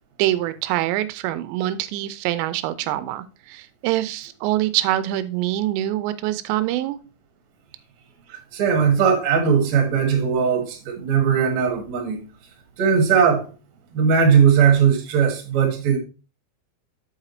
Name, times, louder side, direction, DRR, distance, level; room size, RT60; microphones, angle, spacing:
voice 1, 0.2-7.0, right 14 dB, 90° right, 2.9 m, -24 dB
voice 2, 8.3-12.2 12.8-13.5 13.9-16.0, right 7 dB, 55° right, 2.2 m, -19 dB
7.5 x 4.9 x 4.2 m
omnidirectional pair, 5.0 m